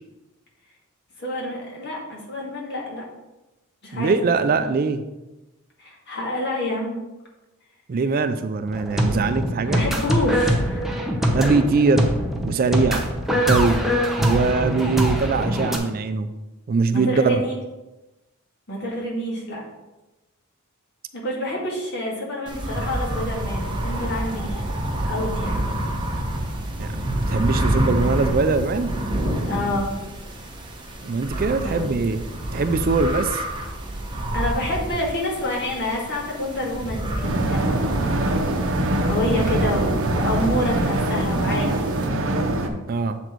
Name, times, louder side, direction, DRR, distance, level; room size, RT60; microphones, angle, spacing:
voice 1, 1.2-3.0 3.8-4.7 5.8-7.0 9.7-10.9 16.9-17.5 18.7-19.6 21.1-24.6 25.1-25.6 29.5-29.9 31.6-31.9 34.3-38.2 39.0-41.8, left 1 dB, 50° left, -3 dB, 2.1 m, -28 dB
voice 2, 3.9-5.0 7.9-9.8 11.3-12.1 12.4-13.0 13.3-13.8 14.2-16.3 16.7-17.4 26.8-29.0 31.0-32.2 32.5-33.4 42.9-43.2, right 4 dB, 40° right, 10 dB, 0.4 m, -22 dB
sound 1, 8.7-15.8, equal, ahead, 0.7 m, -23 dB
sound 2, 22.5-42.1, right 1 dB, 20° right, 1.0 m, -28 dB
sound 3, 37.2-42.7, right 1 dB, 60° right, 0.8 m, -23 dB
7.8 x 4.2 x 4.5 m, 1.0 s
head